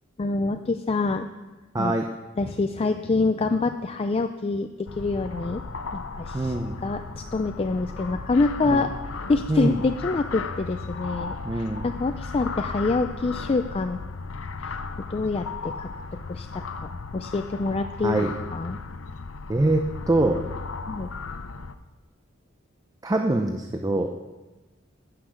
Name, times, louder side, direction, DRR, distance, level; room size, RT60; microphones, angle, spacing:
voice 1, 0.2-1.3 1.8-2.0 2.4-5.6 5.9-6.6 6.8-8.9 9.3-14.0 14.6-14.8 15.1-15.9 16.3-18.8 20.9-21.1, left 3 dB, 30° left, 7 dB, 0.4 m, -26 dB
voice 2, 1.7-2.1 6.3-6.8 8.7-8.8 9.5-9.8 11.4-11.8 18.0-18.3 19.5-20.4 23.0-24.1, right 2 dB, 20° right, 4 dB, 0.6 m, -24 dB
sound 1, 4.9-21.7, left 4 dB, 90° left, 0.7 m, -36 dB
15.0 x 5.9 x 6.4 m, 1.2 s
head